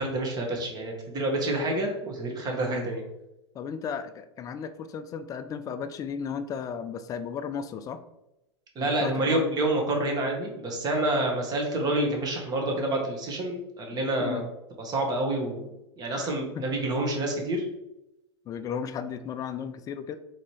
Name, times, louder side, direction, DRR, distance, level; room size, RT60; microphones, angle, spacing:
voice 1, 0.0-3.0 8.7-14.4 14.8-15.7 16.0-17.6, right 1 dB, 25° right, 1 dB, 1.3 m, -28 dB
voice 2, 3.5-8.0 8.8-9.4 13.9-14.5 16.1-16.6 18.5-20.2, left 7 dB, 25° left, 11 dB, 0.3 m, -35 dB
4.3 x 3.9 x 3.1 m, 0.90 s
figure-of-eight pair, 95°, 15 cm